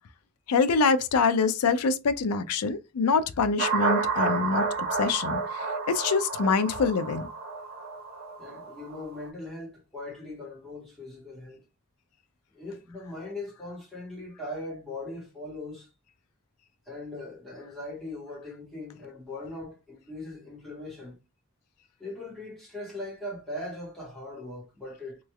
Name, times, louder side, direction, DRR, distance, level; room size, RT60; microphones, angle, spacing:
voice 1, 0.5-4.6 5.0-7.3, left 4 dB, 85° left, 0.4 m, -25 dB
sound 1, 3.6-9.2, right 4 dB, 45° right, 0.7 m, -30 dB
voice 2, 8.4-11.6 12.5-15.9 16.9-21.2 22.0-25.2, left 2 dB, ahead, 1.7 m, -40 dB
3.1 x 3.1 x 2.3 m
head